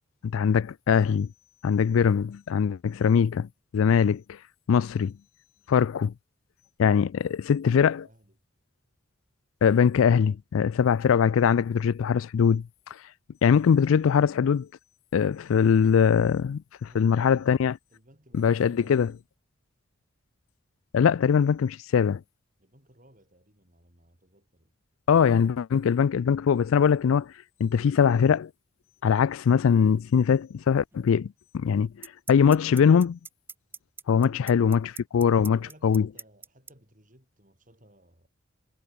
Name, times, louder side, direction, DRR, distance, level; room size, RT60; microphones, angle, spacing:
voice 1, 0.2-1.3 1.6-4.4 4.7-5.1 5.7-6.1 6.8-8.0 9.6-12.7 13.4-14.7 15.1-17.7 18.3-19.1 20.9-22.2 25.1-27.3 27.6-28.5 29.0-33.2 34.1-36.1, left 7 dB, 80° left, 0.4 m, -22 dB
voice 2, 7.7-8.4 16.9-17.6 17.9-19.2 22.6-24.7 34.2-34.7 35.5-38.3, right 1 dB, 40° right, 7.7 m, -57 dB
sound 1, 30.9-31.0 32.0-36.7, right 5 dB, 10° right, 0.8 m, -41 dB
head